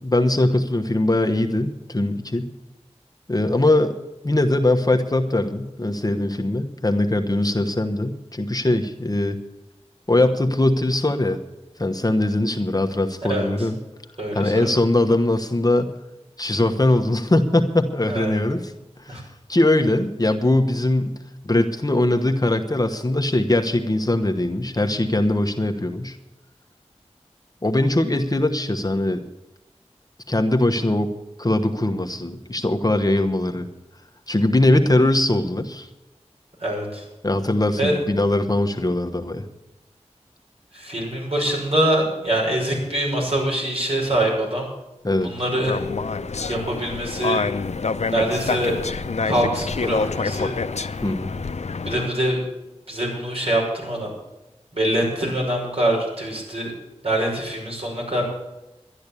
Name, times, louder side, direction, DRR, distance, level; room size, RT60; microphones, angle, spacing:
voice 1, 0.0-2.5 3.3-3.9 4.2-9.4 10.1-11.4 11.8-13.8 14.3-15.9 16.4-18.7 19.0-21.2 21.4-26.2 27.6-29.2 30.3-31.1 31.4-33.7 34.3-35.9 37.2-39.4 45.0-45.3 51.0-51.3, left 1 dB, 35° left, 4 dB, 1.2 m, -21 dB
voice 2, 13.3-13.7 14.2-14.7 18.1-18.4 19.1-19.2 36.6-37.1 37.8-38.0 40.7-44.7 45.2-45.8 46.5-47.4 48.1-48.8 49.2-50.5 51.8-52.4 52.9-54.1 54.7-56.7 57.0-58.2, right 1 dB, 60° right, -2 dB, 5.9 m, -24 dB
sound 1, 45.7-52.1, left 4 dB, 80° left, 0.6 m, -27 dB
12.0 x 10.5 x 8.4 m, 0.97 s
wide cardioid pair, 50°, 12 cm